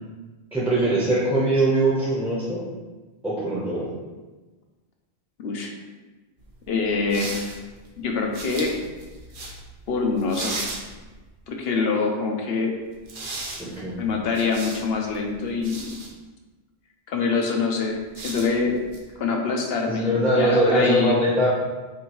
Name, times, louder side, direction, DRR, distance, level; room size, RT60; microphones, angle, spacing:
voice 1, 0.5-2.6 3.2-3.9 13.6-14.0 19.8-21.5, right 1 dB, ahead, -7 dB, 0.8 m, -22 dB
voice 2, 5.4-5.7 6.7-7.5 8.0-8.8 9.9-10.6 11.5-12.8 14.0-16.0 17.1-18.8 19.2-21.2, left 4 dB, 75° left, 2 dB, 1.0 m, -25 dB
sound 1, 6.4-11.4 12.9-16.1 17.9-19.1, right 2 dB, 60° right, 0.9 m, -38 dB
6.5 x 2.7 x 3.1 m, 1.2 s
omnidirectional pair, 1.0 m